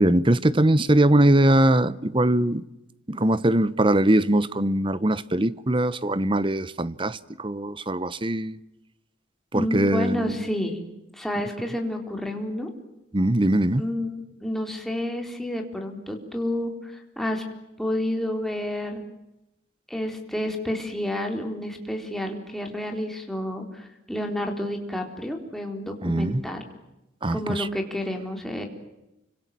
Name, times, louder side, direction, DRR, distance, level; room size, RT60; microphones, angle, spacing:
voice 1, 0.0-2.6 3.1-8.6 9.5-10.5 13.1-13.8 26.0-26.4 27.2-27.7, right 1 dB, 25° right, 1.0 m, -21 dB
voice 2, 9.5-10.8 11.1-12.7 13.8-17.4 17.8-19.0 19.9-26.6 27.3-28.7, left 1 dB, ahead, 4.1 m, -30 dB
29.5 x 25.5 x 7.7 m
head